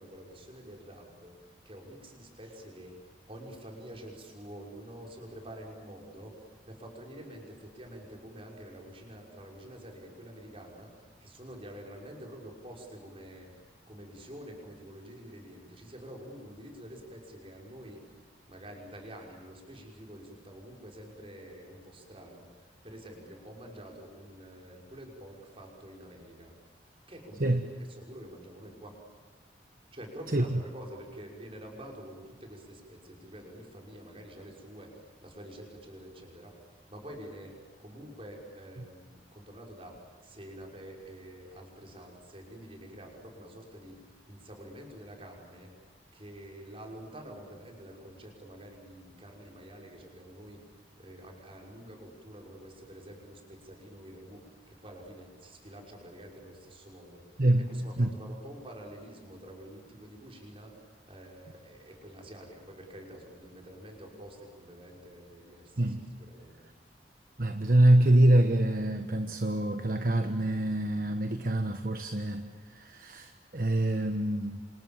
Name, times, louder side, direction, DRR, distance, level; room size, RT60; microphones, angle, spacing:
voice 1, 0.0-29.0 29.9-45.9 46.1-66.7, equal, 30° right, 0 dB, 5.9 m, -48 dB
voice 2, 65.8-66.1 67.4-74.6, right 1 dB, 50° right, 7 dB, 1.2 m, -25 dB
28.5 x 27.0 x 7.5 m, 1.4 s
head